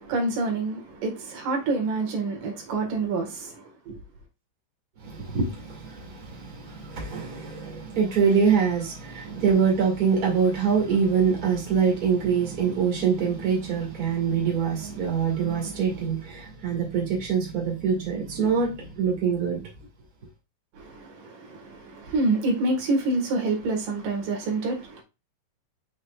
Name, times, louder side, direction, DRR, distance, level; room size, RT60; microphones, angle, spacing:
voice 1, 0.0-4.0 20.8-25.0, right 2 dB, 70° right, 3.3 m, -27 dB
voice 2, 5.0-19.6, right 6 dB, 30° right, 2.3 m, -24 dB
6.5 x 6.2 x 2.4 m
omnidirectional pair, 4.0 m